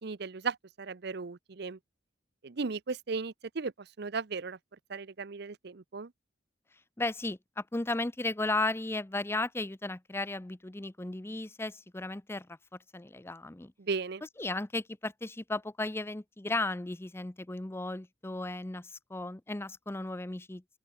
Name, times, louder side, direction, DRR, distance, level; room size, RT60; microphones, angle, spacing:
voice 1, 0.0-1.8 2.4-4.6 4.9-6.1 13.8-14.2, right 4 dB, 60° right, 0.7 m, -36 dB
voice 2, 7.0-12.5 12.9-13.7 14.4-20.6, left 2 dB, 15° left, 0.6 m, -35 dB
open air
head